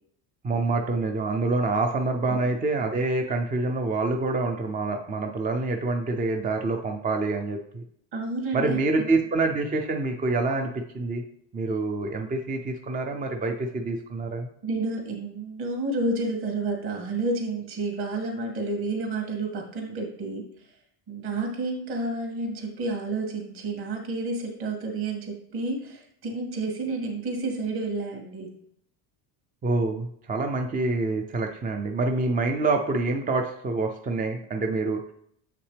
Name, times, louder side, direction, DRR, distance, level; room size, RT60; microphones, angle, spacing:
voice 1, 0.4-7.8 8.5-11.2 11.5-14.5 29.6-35.0, right 3 dB, 20° right, 4 dB, 0.4 m, -26 dB
voice 2, 8.1-9.1 14.6-20.4 21.1-28.5, right 2 dB, 50° right, 1 dB, 2.4 m, -30 dB
7.1 x 5.8 x 3.3 m, 0.71 s
cardioid pair, 135°, 48 cm